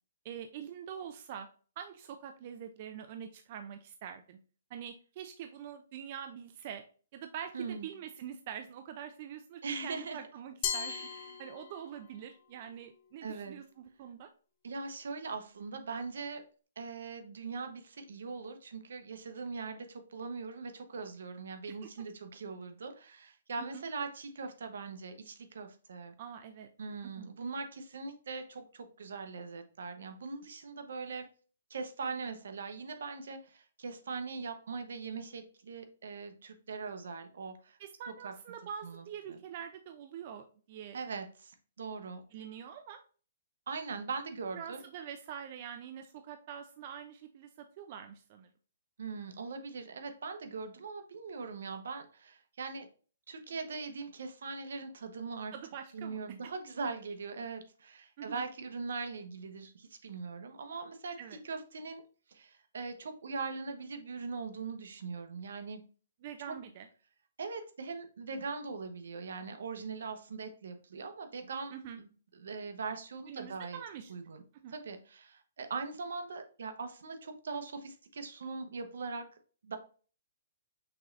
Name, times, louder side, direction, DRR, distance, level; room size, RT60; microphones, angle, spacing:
voice 1, 0.2-1.5 1.8-4.4 4.7-6.8 7.1-10.9 11.4-14.3 21.7-21.9 23.6-23.8 26.2-26.7 27.2-27.3 37.8-41.0 42.3-43.0 44.5-47.5 47.8-48.5 55.5-56.2 56.4-56.5 58.2-58.4 61.2-61.4 66.2-66.9 71.7-72.0 73.3-74.1 74.6-74.7, right 8 dB, 40° right, 7 dB, 0.4 m, -45 dB
voice 2, 7.5-7.9 9.6-10.2 10.9-11.4 13.2-13.6 14.6-16.4 16.8-26.2 26.8-31.3 31.7-37.8 38.2-38.3 38.8-39.4 40.9-42.2 43.7-44.8 49.0-52.9 53.3-55.5 55.9-61.2 61.4-62.0 62.3-65.8 66.5-66.6 67.4-71.7 72.0-73.8 74.1-74.4 74.7-79.3 79.6-79.8, right 4 dB, 75° right, 7 dB, 0.9 m, -41 dB
Glass, 10.6-12.1, left 8 dB, 35° left, 0.6 m, -37 dB
5.9 x 3.1 x 2.5 m, 0.39 s
hypercardioid pair, 150°, 0 cm